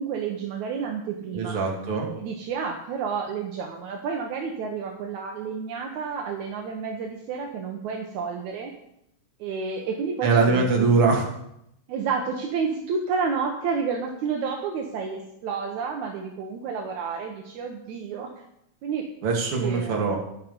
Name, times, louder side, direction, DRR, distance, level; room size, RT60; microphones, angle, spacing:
voice 1, 0.0-1.6 2.2-8.7 9.4-10.9 11.9-18.3 18.8-19.1 19.6-20.2, right 5 dB, 70° right, 2 dB, 2.4 m, -30 dB
voice 2, 1.3-2.1 10.2-11.2 19.2-20.2, right 4 dB, 45° right, 0 dB, 2.8 m, -22 dB
11.0 x 10.0 x 5.4 m, 0.78 s
omnidirectional pair, 3.5 m